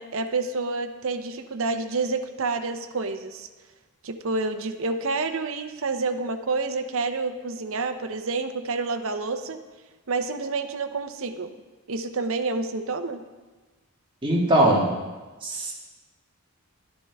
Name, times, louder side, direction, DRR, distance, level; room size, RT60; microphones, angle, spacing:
voice 1, 0.0-3.5 4.0-9.6 10.1-11.5 11.9-13.2, right 3 dB, 60° right, 8 dB, 0.7 m, -28 dB
voice 2, 14.2-14.9 15.4-15.7, right 1 dB, 20° right, -4 dB, 1.8 m, -20 dB
12.0 x 9.7 x 3.5 m, 1.2 s
head